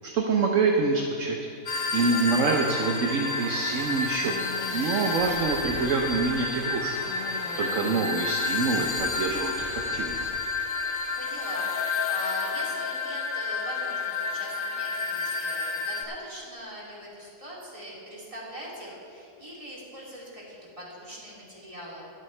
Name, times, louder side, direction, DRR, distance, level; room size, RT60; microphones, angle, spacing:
voice 1, 0.0-1.4 1.7-4.3 4.7-6.9 7.3-10.3, right 4 dB, 65° right, 2 dB, 1.1 m, -26 dB
sound 1, 1.7-16.0, left 4 dB, 45° left, 0.9 m, -30 dB
voice 2, 1.7-2.2 11.2-11.7 12.1-22.1, equal, 20° right, -6 dB, 2.9 m, -42 dB
sound 2, 2.3-10.3, left 3 dB, 65° left, 1.5 m, -42 dB
22.0 x 7.9 x 3.3 m, 2.5 s
omnidirectional pair, 1.5 m